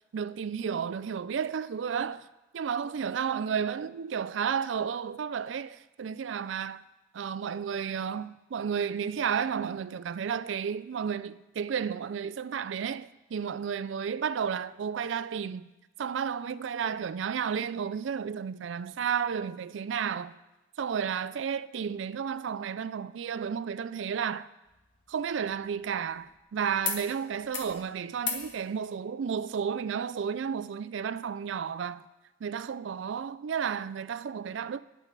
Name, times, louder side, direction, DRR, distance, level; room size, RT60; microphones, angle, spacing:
voice 1, 0.1-2.3 2.5-6.8 7.1-15.7 16.0-20.4 20.8-24.5 25.1-32.0 32.4-34.8, right 7 dB, 80° right, 0.4 m, -32 dB
sound 1, 24.6-26.4 26.8-27.0 27.3-27.7 28.2-28.5 29.8-29.9, left 6 dB, 75° left, 1.7 m, -38 dB
20.0 x 7.2 x 4.1 m
head